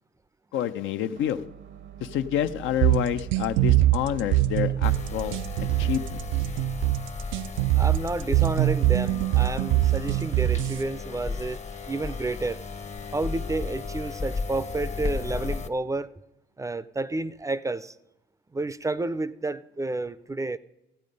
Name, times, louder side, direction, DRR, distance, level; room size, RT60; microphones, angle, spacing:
voice 1, 0.5-1.4 2.0-5.4 5.8-6.2, left 10 dB, 80° left, 0.6 m, -28 dB
sound 1, 1.2-8.2, right 13 dB, 65° right, 0.8 m, -41 dB
sound 2, 2.8-10.8, right 16 dB, 85° right, 0.4 m, -23 dB
sound 3, 4.8-15.7, left 4 dB, 35° left, 0.8 m, -35 dB
voice 2, 7.7-12.6 13.1-16.1 16.6-18.0 18.5-20.6, right 2 dB, 15° right, 0.4 m, -30 dB
14.0 x 8.5 x 5.2 m
cardioid pair, 80°, 20 cm